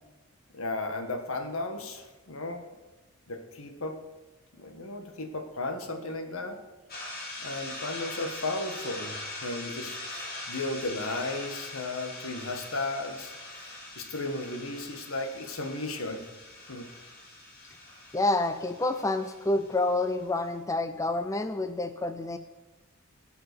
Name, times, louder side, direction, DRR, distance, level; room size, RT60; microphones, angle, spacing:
voice 1, 0.5-2.6 3.3-4.0 4.6-6.6 7.4-9.1 9.4-16.2 16.7-16.9, left 2 dB, 75° left, 5 dB, 1.6 m, -35 dB
sound 1, 6.9-20.2, left 2 dB, 45° left, 2.7 m, -42 dB
voice 2, 18.1-22.4, left 2 dB, 15° left, 9 dB, 0.4 m, -28 dB
16.5 x 5.7 x 6.8 m, 1.2 s
head